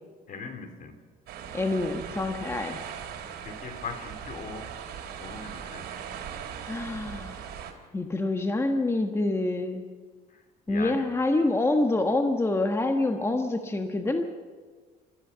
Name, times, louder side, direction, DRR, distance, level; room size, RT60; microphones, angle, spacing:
voice 1, 0.3-1.0 3.4-4.7 5.2-5.9 10.3-11.0, left 4 dB, 50° left, 7 dB, 3.1 m, -40 dB
sound 1, 1.3-7.7, right 8 dB, 75° right, 3.2 m, -39 dB
voice 2, 1.5-2.8 6.7-7.5 7.9-9.8 10.7-14.2, left 2 dB, 15° left, 5 dB, 1.4 m, -26 dB
27.5 x 14.5 x 7.0 m, 1.5 s
cardioid pair, 110°, 17 cm